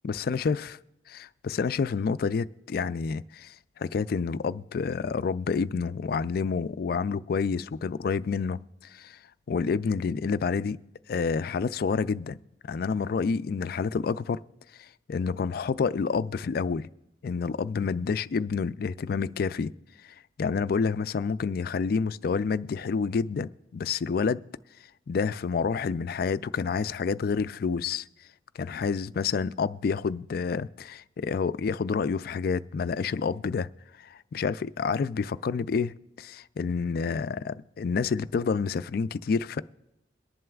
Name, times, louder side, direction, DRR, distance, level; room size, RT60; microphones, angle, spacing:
voice 1, 0.0-0.7 1.2-9.2 9.5-10.8 11.1-12.4 12.7-14.4 14.8-16.9 17.2-19.7 20.0-24.4 25.1-28.0 28.6-33.7 34.0-39.6, left 5 dB, 55° left, 0.3 m, -29 dB
22.5 x 11.0 x 2.4 m
head